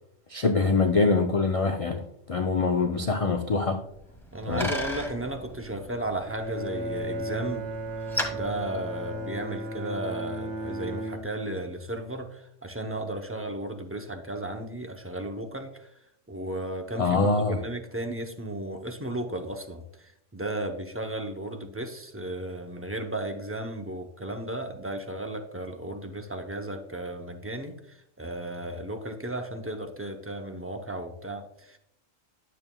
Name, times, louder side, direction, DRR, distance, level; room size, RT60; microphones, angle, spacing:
voice 1, 0.3-3.8 4.5-4.7 17.0-17.6, left 3 dB, 60° left, 4 dB, 0.3 m, -24 dB
Bicycle, 3.9-9.6, equal, ahead, 1.3 m, -37 dB
voice 2, 4.3-7.7 8.3-15.9 16.3-31.8, right 1 dB, 20° right, 4 dB, 0.4 m, -34 dB
Bowed string instrument, 6.3-11.7, right 1 dB, 55° right, 1.0 m, -35 dB
11.0 x 7.4 x 2.2 m, 0.75 s
omnidirectional pair, 1.3 m